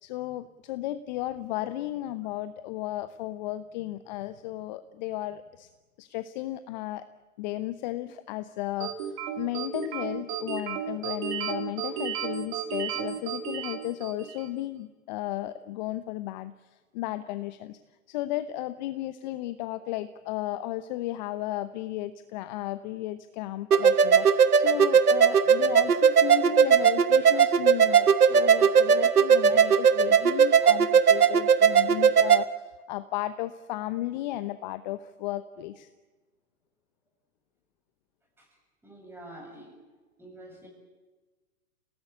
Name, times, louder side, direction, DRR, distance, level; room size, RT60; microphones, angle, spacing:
voice 1, 0.0-5.7 6.0-7.1 7.4-17.8 18.1-35.9, left 15 dB, 30° left, 12 dB, 0.9 m, -34 dB
sound 1, 8.8-14.5, right 9 dB, 35° right, 3.0 m, -33 dB
sound 2, 23.7-32.4, right 7 dB, 85° right, 1.3 m, -19 dB
voice 2, 38.8-39.8 40.2-40.7, right 1 dB, 5° right, 1 dB, 6.9 m, -47 dB
29.0 x 18.0 x 8.5 m, 1.2 s
hypercardioid pair, 130°, 44 cm